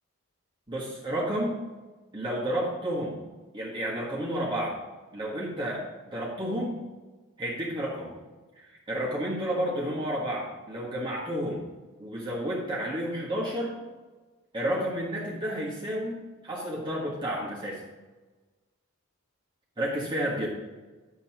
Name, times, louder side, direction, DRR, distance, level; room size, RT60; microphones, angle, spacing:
voice 1, 0.7-1.6 2.1-3.2 3.5-4.8 5.1-6.8 7.4-8.1 8.6-11.6 12.0-13.8 14.5-17.8 19.8-20.5, equal, 25° right, -6 dB, 1.5 m, -31 dB
10.5 x 7.0 x 3.0 m, 1.2 s
head